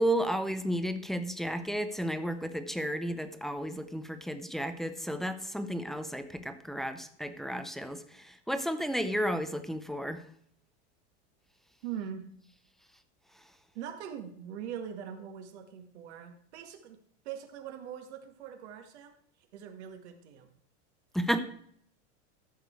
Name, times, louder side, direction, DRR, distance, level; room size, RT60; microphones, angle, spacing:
voice 1, 0.0-10.2 21.1-21.4, equal, ahead, 8 dB, 0.5 m, -32 dB
voice 2, 11.8-12.3 13.8-17.0 17.3-19.1 19.5-20.5, right 9 dB, 70° right, 5 dB, 1.9 m, -42 dB
13.5 x 6.7 x 4.6 m, 0.63 s
supercardioid pair, 145°, 34 cm